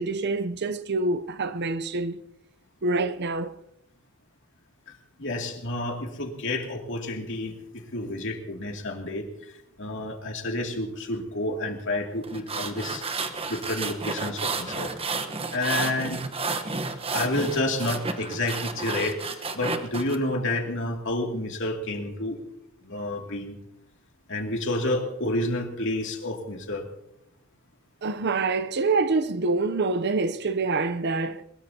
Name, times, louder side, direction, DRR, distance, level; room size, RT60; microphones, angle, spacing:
voice 1, 0.0-2.2 2.8-3.5 28.0-31.4, right 3 dB, 55° right, 0.7 m, -26 dB
voice 2, 4.9-9.5 9.8-13.1 13.5-14.9 15.5-16.2 17.1-22.4 22.8-23.6 24.3-26.9, left 1 dB, 65° left, 2.5 m, -30 dB
sound 1, 12.2-20.2, right 3 dB, 30° right, 1.1 m, -31 dB
22.0 x 21.0 x 2.9 m
head